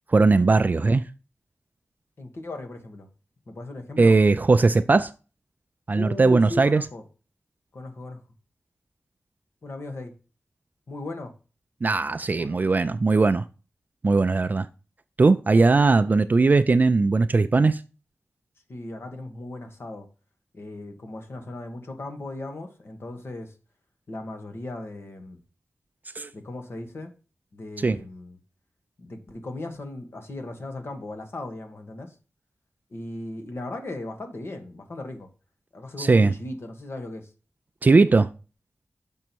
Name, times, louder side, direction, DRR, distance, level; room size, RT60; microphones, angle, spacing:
voice 1, 0.1-1.0 4.0-5.1 5.9-6.9 11.8-13.4 14.0-14.7 15.2-17.8 26.2-26.3 27.8-28.0 36.0-36.3 37.8-38.3, right 3 dB, 40° right, 0.4 m, -19 dB
voice 2, 2.2-3.1 3.5-4.1 5.9-7.0 7.7-8.2 9.6-10.1 10.9-11.3 12.4-12.6 18.7-20.1 20.5-23.5 24.1-25.4 26.3-27.1 27.5-28.4 29.0-32.1 32.9-35.3 35.7-37.3, left 2 dB, 60° left, 1.6 m, -37 dB
6.1 x 5.5 x 4.5 m
wide cardioid pair, 100°, 5 cm